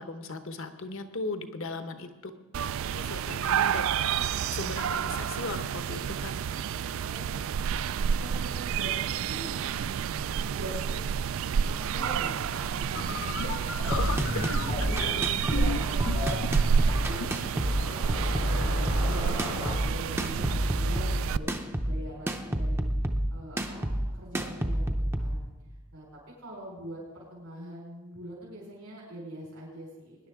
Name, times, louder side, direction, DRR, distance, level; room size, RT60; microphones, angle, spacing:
voice 1, 0.0-2.3 2.9-6.3 13.8-15.5 20.4-20.5 20.9-21.3, left 3 dB, 65° left, 8 dB, 1.0 m, -38 dB
sound 1, 2.5-21.4, right 7 dB, 65° right, 0.3 m, -30 dB
voice 2, 7.0-7.5 8.2-10.1 10.4-11.2 11.6-14.4 15.4-22.9 23.3-25.4 25.9-26.1 26.4-30.2, right 1 dB, 80° right, -4 dB, 4.5 m, -43 dB
sound 2, 12.9-19.8, left 3 dB, 80° left, 2.4 m, -37 dB
sound 3, 13.7-25.4, right 1 dB, 10° right, 0.6 m, -29 dB
20.0 x 10.5 x 3.6 m, 1.2 s
head